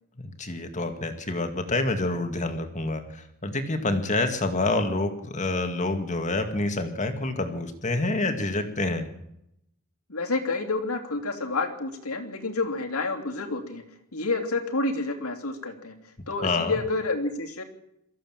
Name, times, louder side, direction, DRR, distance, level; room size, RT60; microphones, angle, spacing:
voice 1, 0.2-9.1 16.4-16.8, left 2 dB, 35° left, 6 dB, 2.2 m, -27 dB
voice 2, 10.1-13.8 14.1-15.9 16.3-17.6, left 3 dB, 80° left, 2 dB, 3.1 m, -29 dB
23.0 x 15.0 x 7.6 m, 0.80 s
head